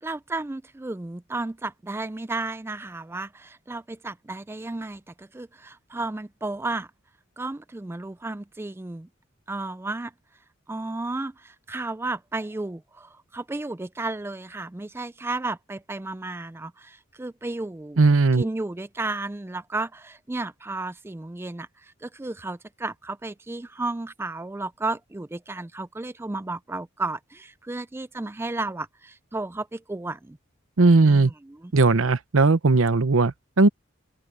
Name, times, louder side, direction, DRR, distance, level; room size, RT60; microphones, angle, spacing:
voice 1, 0.0-6.9 7.4-9.1 9.5-10.1 10.7-18.0 18.4-30.4 31.0-31.7, right 2 dB, 10° right, 0.3 m, -33 dB
voice 2, 18.0-18.4 30.8-31.3 31.7-33.7, right 3 dB, 80° right, 0.8 m, -18 dB
open air
head